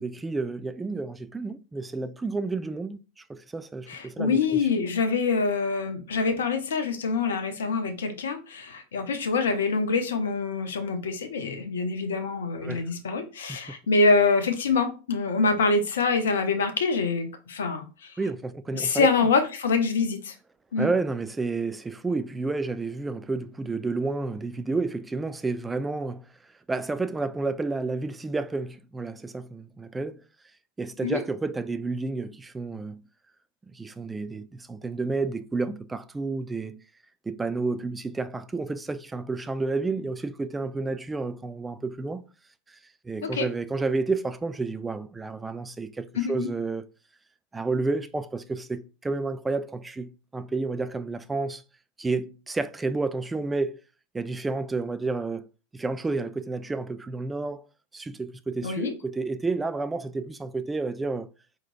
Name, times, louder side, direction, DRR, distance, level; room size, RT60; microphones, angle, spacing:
voice 1, 0.0-4.6 12.6-12.9 13.5-13.6 18.2-19.3 20.8-26.3 26.7-30.2 30.8-33.0 33.7-36.8 37.3-42.2 42.7-42.8 43.0-46.9 47.5-51.6 52.0-53.8 54.1-55.5 55.7-57.7 57.9-61.3, right 3 dB, 10° right, 0.3 m, -30 dB
voice 2, 3.9-18.1 18.7-20.3 20.7-20.9 31.0-31.2 43.2-43.5 46.2-46.5 58.6-58.9, left 4 dB, 65° left, 0.7 m, -25 dB
4.5 x 3.9 x 2.6 m
figure-of-eight pair, 90°, 0 cm